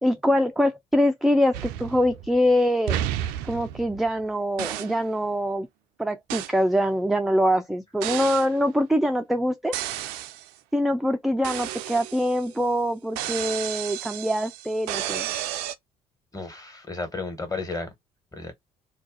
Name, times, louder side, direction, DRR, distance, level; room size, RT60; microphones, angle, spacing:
voice 1, 0.0-3.0 3.4-5.7 6.0-9.8 10.7-15.3, equal, ahead, 0.4 m, -24 dB
sound 1, 1.5-2.5 2.9-4.2 4.6-5.0 6.3-6.6 8.0-8.5 9.7-10.5 11.4-12.6 13.2-15.8, right 12 dB, 70° right, 0.4 m, -32 dB
voice 2, 16.3-17.9 18.3-18.5, left 3 dB, 20° left, 1.4 m, -33 dB
2.5 x 2.2 x 3.9 m
hypercardioid pair, 50°, 17 cm